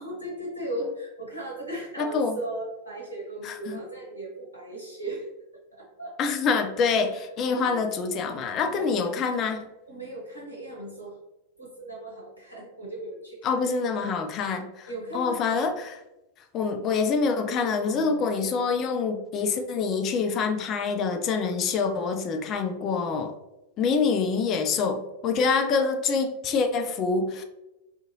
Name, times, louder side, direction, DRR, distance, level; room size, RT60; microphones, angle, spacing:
voice 1, 0.0-5.3 5.7-6.2 7.1-7.2 7.5-7.9 8.2-9.2 9.9-11.2 11.6-13.7 14.9-15.4 17.9-18.3 25.4-25.5, right 1 dB, 90° right, -3 dB, 0.7 m, -37 dB
voice 2, 2.0-2.4 3.4-3.8 6.2-9.7 13.4-14.9 15.1-16.0 16.5-23.3 23.8-27.4, left 5 dB, 35° left, 6 dB, 0.3 m, -26 dB
2.6 x 2.4 x 2.6 m, 0.96 s
figure-of-eight pair, 90°, 0 cm